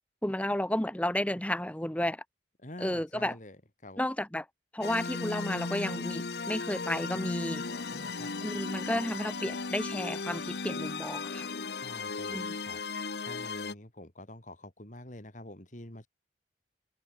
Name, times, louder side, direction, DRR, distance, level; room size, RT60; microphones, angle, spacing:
voice 1, 0.2-2.2 2.8-3.4 4.0-4.5 4.7-7.6 8.4-11.5 12.3-12.6, left 1 dB, 10° left, 1.3 m, -32 dB
voice 2, 2.6-3.6 3.8-4.0 7.9-8.3 11.8-16.1, left 1 dB, 45° left, 3.2 m, -47 dB
sound 1, 4.8-13.7, left 4 dB, 65° left, 1.0 m, -36 dB
head